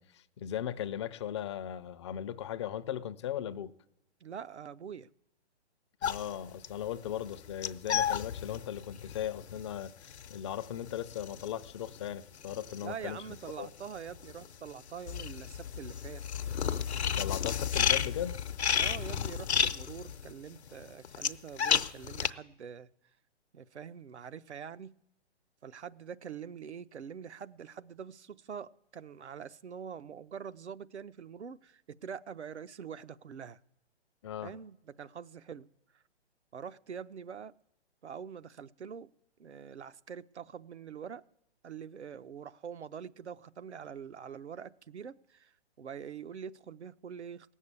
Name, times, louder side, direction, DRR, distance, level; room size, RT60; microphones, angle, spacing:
voice 1, 0.0-3.7 6.0-13.2 13.6-13.7 17.2-18.4 34.2-34.5, left 10 dB, 25° left, 0.5 m, -38 dB
voice 2, 4.2-5.1 12.8-16.2 18.7-22.9 23.5-24.9 25.6-33.6 34.4-35.7 35.9-36.0 36.5-37.5 38.0-39.1 39.4-41.2 41.6-47.5, right 7 dB, 80° right, 0.7 m, -44 dB
sound 1, 6.0-13.5 13.8-22.3, left 8 dB, 75° left, 0.8 m, -33 dB
18.5 x 7.3 x 8.2 m
figure-of-eight pair, 130°, 34 cm